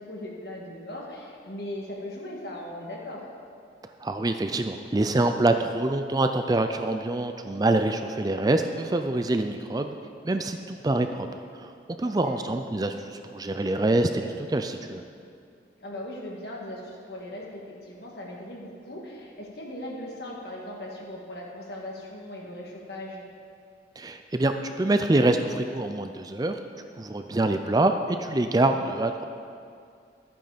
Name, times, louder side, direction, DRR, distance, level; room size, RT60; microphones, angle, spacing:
voice 1, 0.1-3.2 12.0-12.4 15.8-23.2 27.4-27.7, left 1 dB, 60° left, -2 dB, 2.1 m, -39 dB
voice 2, 4.0-9.9 10.2-11.3 11.5-11.7 12.0-15.0 24.0-26.6 27.0-29.2, right 2 dB, 20° right, 7 dB, 0.4 m, -25 dB
12.0 x 9.2 x 5.1 m, 2.4 s
head